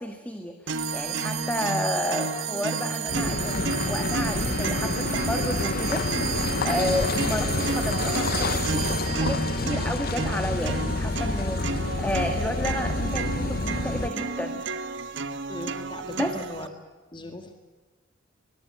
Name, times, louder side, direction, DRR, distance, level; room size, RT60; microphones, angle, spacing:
voice 1, 0.0-14.6 16.2-16.3, left 1 dB, 5° left, 6 dB, 1.6 m, -32 dB
sound 1, 0.7-16.7, right 3 dB, 60° right, 1.3 m, -32 dB
sound 2, 0.7-11.4, right 12 dB, 85° right, 2.1 m, -34 dB
Car passing by / Idling / Accelerating revving vroom, 3.1-14.1, left 3 dB, 45° left, 0.8 m, -28 dB
voice 2, 15.5-16.7 17.1-17.5, left 2 dB, 25° left, 6 dB, 1.9 m, -39 dB
23.5 x 20.5 x 7.9 m, 1.4 s
head